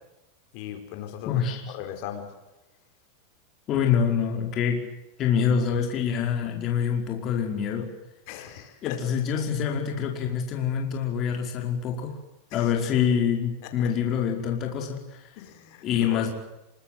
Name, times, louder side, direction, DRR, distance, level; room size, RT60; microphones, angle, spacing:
voice 1, 0.5-2.3 8.3-9.0 12.5-12.7 13.8-13.9 15.4-16.2, left 11 dB, 50° left, 6 dB, 4.9 m, -38 dB
voice 2, 1.2-1.7 3.7-4.8 5.2-7.9 8.8-12.2 12.5-15.2 15.8-16.3, left 7 dB, 30° left, 2 dB, 5.1 m, -26 dB
27.5 x 24.5 x 7.9 m, 0.95 s
supercardioid pair, 160°, 0 cm